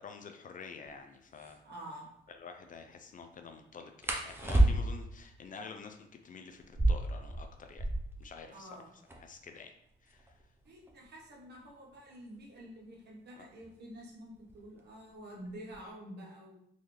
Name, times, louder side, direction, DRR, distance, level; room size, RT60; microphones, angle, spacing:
voice 1, 0.0-1.6 2.3-7.9 8.2-8.7 9.2-9.7 10.0-10.4 13.4-13.5, left 5 dB, 45° left, 5 dB, 0.4 m, -49 dB
sound 1, 0.9-1.0 1.3-1.6 4.0-5.1 6.6-8.2 8.5-8.6 8.8-9.4 10.1-12.6 13.6-13.9 14.3-14.8 15.1-15.9, right 1 dB, 10° right, 0.6 m, -31 dB
voice 2, 1.6-2.1 8.5-8.9 10.6-16.6, equal, 55° right, -3 dB, 1.3 m, -48 dB
3.8 x 2.6 x 3.1 m, 0.74 s
cardioid pair, 90°, 20 cm